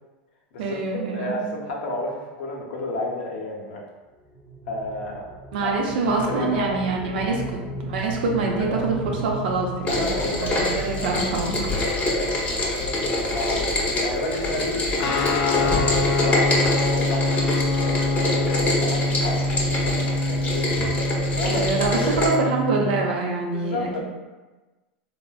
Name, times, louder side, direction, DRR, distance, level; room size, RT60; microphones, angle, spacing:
voice 1, 0.6-1.5 5.5-7.4 7.8-9.0 9.2-11.7 21.5-24.0, right 3 dB, 75° right, 0 dB, 0.5 m, -25 dB
voice 2, 1.1-3.8 4.7-5.2 5.6-5.7 6.3-6.8 8.6-8.9 9.9-11.1 11.7-13.7 14.0-17.4 17.8-20.7 21.3-21.6 22.0-22.2 23.5-24.0, left 1 dB, 70° left, -2 dB, 0.7 m, -31 dB
sound 1, 4.2-19.1, right 1 dB, 5° right, 0.6 m, -38 dB
Rain, 9.9-22.3, left 2 dB, 25° left, 0.7 m, -25 dB
Guitar, 15.0-23.1, left 2 dB, 50° left, 0.3 m, -25 dB
3.5 x 2.1 x 2.3 m, 1.2 s
hypercardioid pair, 115°, 5 cm